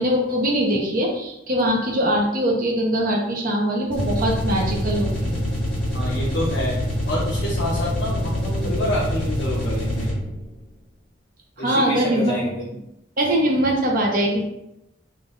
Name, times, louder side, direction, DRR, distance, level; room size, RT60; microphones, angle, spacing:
voice 1, 0.0-5.5 11.6-12.3 13.2-14.4, equal, 50° right, -1 dB, 0.9 m, -22 dB
sound 1, 3.9-10.4, equal, 5° left, 1.3 m, -25 dB
voice 2, 5.9-6.8 7.1-10.1 11.6-12.7, left 1 dB, 70° left, -6 dB, 0.8 m, -27 dB
3.8 x 2.5 x 3.8 m, 0.84 s
head